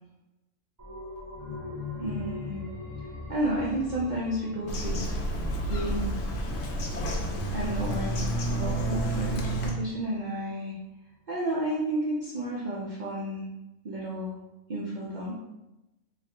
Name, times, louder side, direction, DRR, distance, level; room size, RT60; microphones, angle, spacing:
sound 1, 0.8-10.1 10.5-10.6, left 3 dB, 20° right, 0.6 m, -42 dB
voice 1, 2.0-2.6 3.3-5.2 5.7-6.1 7.5-10.7 11.3-13.5 13.8-14.4 14.7-15.3, right 1 dB, 80° right, -6 dB, 0.4 m, -31 dB
Bird vocalization bird call bird song, 4.7-9.7, right 1 dB, 65° left, 0.7 m, -30 dB
3.4 x 2.3 x 2.7 m, 0.97 s
omnidirectional pair, 1.5 m